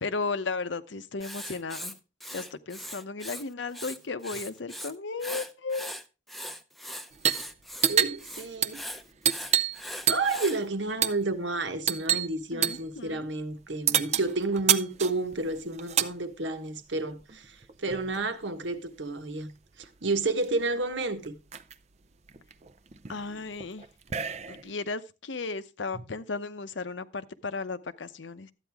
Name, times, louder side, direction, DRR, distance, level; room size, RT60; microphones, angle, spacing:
voice 1, 0.0-2.0 2.3-5.9 12.5-13.3 23.1-23.9 24.5-28.5, left 4 dB, 75° left, 0.8 m, -35 dB
Writing, 1.2-3.4 3.7-4.9 5.2-10.6, equal, ahead, 0.7 m, -40 dB
sound 1, 7.1-7.5 7.7-9.8 10.1-10.4 11.0-11.2 11.9-12.3 12.6-12.9 13.9-16.1 17.2-18.3 19.5-19.6 19.8-20.4 20.9-21.0 21.2-21.7 22.3-24.7, right 9 dB, 35° right, 0.5 m, -28 dB
voice 2, 7.9-8.8 10.1-19.5 19.8-21.4 25.9-26.0, right 2 dB, 75° right, 1.3 m, -31 dB
13.0 x 9.1 x 3.5 m
head